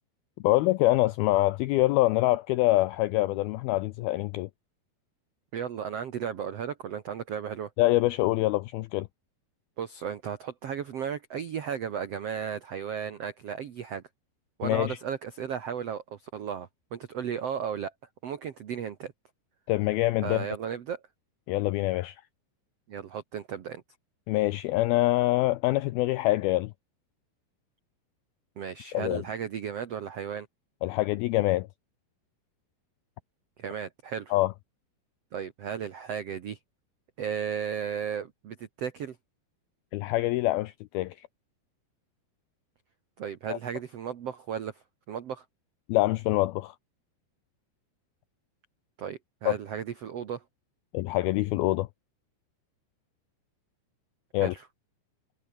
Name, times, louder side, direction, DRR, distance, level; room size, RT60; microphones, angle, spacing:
voice 1, 0.4-4.5 7.8-9.1 14.6-15.0 19.7-20.4 21.5-22.2 24.3-26.7 28.9-29.2 30.8-31.7 34.3-34.5 39.9-41.3 43.5-43.6 45.9-46.8 49.5-49.6 50.9-51.9 54.3-54.5, left 18 dB, 85° left, 2.1 m, -25 dB
voice 2, 5.5-7.7 9.8-14.0 14.6-17.9 18.2-19.1 20.2-21.0 22.9-23.8 28.6-30.5 33.6-34.4 35.3-36.6 37.2-39.2 43.2-45.4 49.0-50.4 54.4-54.7, right 7 dB, 85° right, 1.3 m, -35 dB
omnidirectional pair, 5.1 m